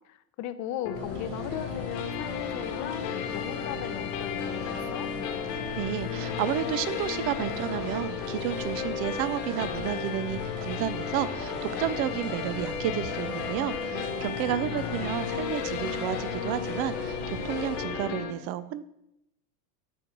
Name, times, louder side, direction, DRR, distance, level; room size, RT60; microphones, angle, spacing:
voice 1, 0.1-5.1 14.6-15.1, left 11 dB, 35° left, 12 dB, 0.7 m, -37 dB
sound 1, 0.9-18.3, left 8 dB, 75° left, 1.5 m, -34 dB
sound 2, 0.9-17.8, right 3 dB, 65° right, 1.9 m, -43 dB
sound 3, 0.9-18.0, right 3 dB, 90° right, 3.6 m, -45 dB
voice 2, 5.5-18.8, right 12 dB, 30° right, 16 dB, 0.4 m, -31 dB
13.0 x 4.6 x 5.1 m, 0.83 s
supercardioid pair, 130°, 49 cm